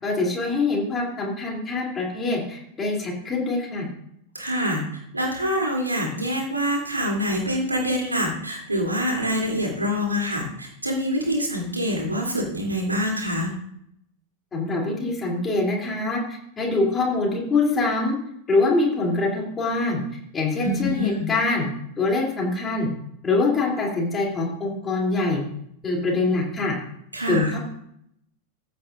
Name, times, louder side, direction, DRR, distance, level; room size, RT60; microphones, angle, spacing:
voice 1, 0.0-3.9 14.5-16.2 16.6-18.2 18.5-20.0 20.3-21.7 22.0-22.9 23.2-25.4 25.8-26.7 27.3-27.6, left 3 dB, 20° left, -2 dB, 3.2 m, -24 dB
voice 2, 4.3-13.5 20.6-21.3 27.1-27.5, equal, 80° right, -1 dB, 3.1 m, -25 dB
15.0 x 8.6 x 2.6 m, 0.73 s
figure-of-eight pair, 90°, 0 cm